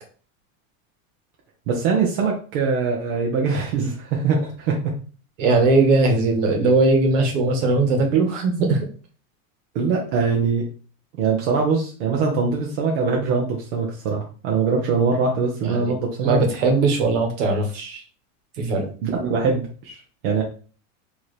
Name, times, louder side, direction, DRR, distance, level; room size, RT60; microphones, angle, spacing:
voice 1, 1.7-4.8 9.7-10.7 11.2-16.4 19.0-20.4, right 5 dB, 40° right, -1 dB, 0.8 m, -22 dB
voice 2, 5.4-8.8 15.6-15.9 16.2-18.0 18.6-18.8, right 3 dB, 60° right, 3 dB, 1.4 m, -19 dB
4.6 x 3.0 x 3.2 m, 0.39 s
supercardioid pair, 175°, 42 cm